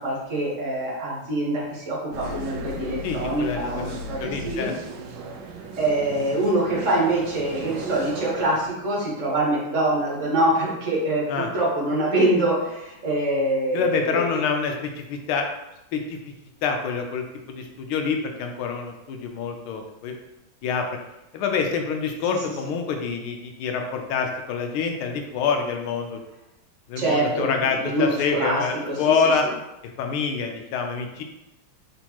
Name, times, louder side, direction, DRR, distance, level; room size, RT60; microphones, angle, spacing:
voice 1, 0.0-4.7 5.8-14.4 22.2-22.3 27.0-29.0 29.4-29.5, right 1 dB, 40° right, -4 dB, 1.4 m, -25 dB
sound 1, 2.1-8.7, right 2 dB, 75° right, 1.0 m, -36 dB
voice 2, 3.0-4.7 11.3-11.5 13.7-15.5 15.9-16.3 16.6-20.1 20.6-21.0 21.3-26.2 26.9-29.5 30.0-31.2, left 5 dB, 90° left, 4 dB, 1.5 m, -26 dB
4.3 x 3.8 x 2.9 m, 0.92 s
omnidirectional pair, 2.3 m